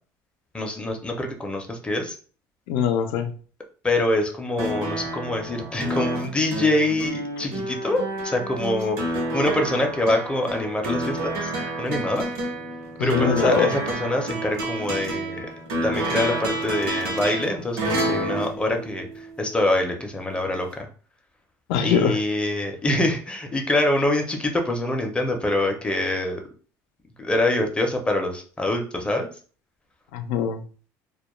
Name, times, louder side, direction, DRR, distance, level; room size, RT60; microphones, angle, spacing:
voice 1, 0.5-2.1 3.8-11.5 11.8-12.3 13.0-15.5 15.8-20.9 21.8-26.4 27.2-29.3, left 1 dB, 15° left, 3 dB, 0.5 m, -25 dB
voice 2, 2.7-3.3 13.0-13.7 21.7-22.1 30.1-30.6, left 8 dB, 90° left, 8 dB, 0.4 m, -22 dB
sound 1, 4.6-19.5 20.7-20.8, right 1 dB, 85° right, 0.9 m, -29 dB
2.2 x 2.1 x 2.9 m, 0.40 s
cardioid pair, 120°, 7 cm